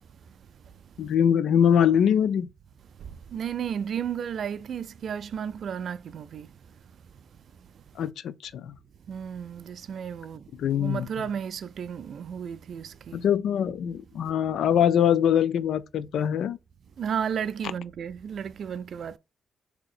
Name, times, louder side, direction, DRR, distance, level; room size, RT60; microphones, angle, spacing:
voice 1, 1.0-2.5 8.0-8.8 10.6-11.1 13.1-16.6, left 9 dB, 75° left, 0.4 m, -23 dB
voice 2, 3.0-6.5 9.1-13.2 17.0-19.2, right 8 dB, 60° right, 0.3 m, -33 dB
4.0 x 2.8 x 4.3 m
cardioid pair, 100°, 0 cm